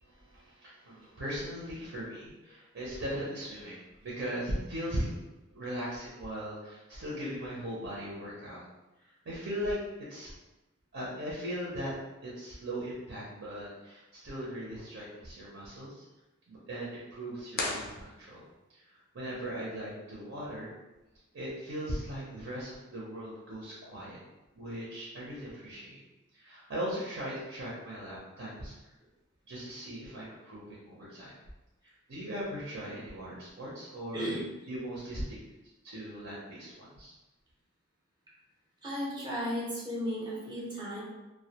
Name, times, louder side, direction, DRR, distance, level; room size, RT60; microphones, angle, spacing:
voice 1, 0.0-5.1 5.5-8.6 9.0-9.8 10.1-10.3 10.9-11.9 12.2-16.0 16.5-18.4 18.7-20.7 21.3-24.2 24.5-26.0 26.3-28.7 29.5-31.3 31.8-34.4 34.7-35.4 35.8-37.1, equal, 60° right, -6 dB, 0.6 m, -39 dB
sound 1, 17.5-18.7, left 3 dB, 45° left, 0.4 m, -36 dB
voice 2, 34.1-34.4 38.8-41.0, equal, 20° right, -6 dB, 0.6 m, -34 dB
2.2 x 2.1 x 2.8 m, 1.1 s
head